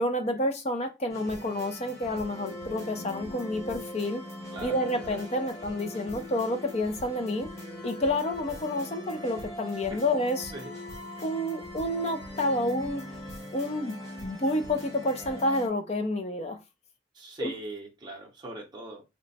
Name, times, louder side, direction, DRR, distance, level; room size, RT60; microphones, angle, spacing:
voice 1, 0.0-4.2 4.6-7.5 7.8-10.5 11.2-13.0 13.5-13.9 14.2-16.6 17.4-17.5, left 1 dB, 35° left, 0.5 m, -29 dB
sound 1, 1.1-15.7, left 1 dB, 15° left, 1.0 m, -41 dB
voice 2, 4.5-5.1 9.7-10.0 10.5-10.7 17.1-19.0, right 2 dB, 25° right, 0.6 m, -41 dB
3.1 x 2.1 x 4.0 m
head